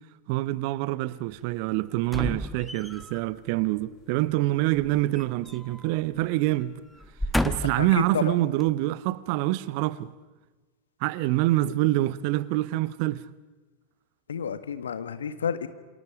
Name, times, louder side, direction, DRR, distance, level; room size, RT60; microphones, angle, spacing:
voice 1, 0.3-6.8 7.4-10.1 11.0-13.3, right 17 dB, 45° right, 0.9 m, -26 dB
sound 1, 2.0-3.2 4.8-5.9 6.2-6.4 7.0-7.9 8.6-8.7, left 1 dB, 5° left, 1.2 m, -31 dB
voice 2, 7.8-8.3 11.6-11.7 14.3-15.7, left 7 dB, 65° left, 1.6 m, -30 dB
28.5 x 26.5 x 5.0 m
figure-of-eight pair, 90°, 0 cm